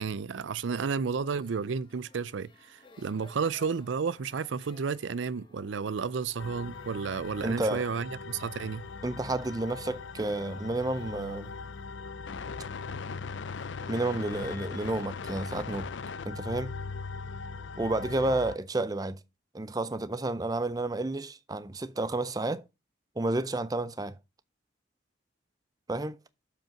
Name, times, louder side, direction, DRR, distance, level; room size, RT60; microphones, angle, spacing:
voice 1, 0.0-8.8, right 5 dB, 75° right, 0.5 m, -32 dB
sound 1, 1.3-13.6, left 4 dB, 25° left, 1.4 m, -60 dB
sound 2, 6.4-18.6, left 4 dB, 70° left, 0.5 m, -40 dB
voice 2, 7.4-7.8 9.0-11.5 13.9-15.9 16.2-16.8 17.8-19.2 19.5-22.6 23.2-24.2 25.9-26.2, right 2 dB, 20° right, 0.5 m, -31 dB
7.5 x 5.3 x 5.8 m
head